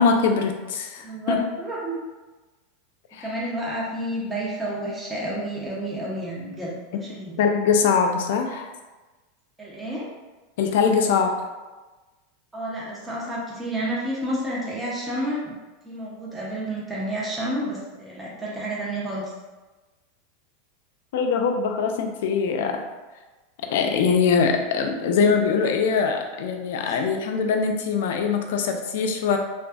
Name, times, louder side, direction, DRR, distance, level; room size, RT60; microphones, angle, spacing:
voice 1, 0.0-1.4 3.1-3.3 7.4-8.7 10.6-11.4 21.1-22.8 23.6-29.4, left 5 dB, 75° left, 4 dB, 0.3 m, -22 dB
voice 2, 1.0-2.0 3.2-7.4 9.6-10.1 12.5-15.5 15.8-19.2 26.8-27.0, right 1 dB, 10° right, -6 dB, 0.6 m, -30 dB
2.5 x 2.3 x 2.3 m, 1.2 s
supercardioid pair, 135°, 0 cm